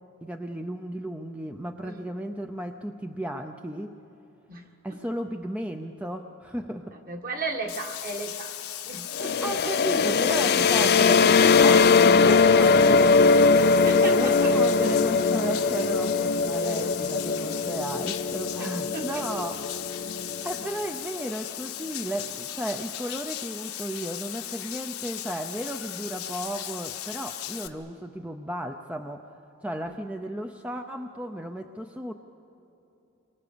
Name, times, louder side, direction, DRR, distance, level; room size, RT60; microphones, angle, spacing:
voice 1, 0.2-4.0 4.8-6.9 7.4-7.5 9.4-13.9 14.1-19.8 20.4-32.1, right 1 dB, 5° right, 4 dB, 0.6 m, -34 dB
voice 2, 6.9-8.6 8.8-9.7 10.7-10.9 13.8-14.8 16.6-16.8 18.6-19.4 29.8-30.0, right 3 dB, 40° right, 3 dB, 1.8 m, -36 dB
Bathtub (filling or washing), 7.7-27.7, left 12 dB, 75° left, 1.1 m, -37 dB
sound 1, 9.1-20.8, left 4 dB, 45° left, 0.5 m, -21 dB
29.0 x 24.5 x 6.9 m, 3.0 s
head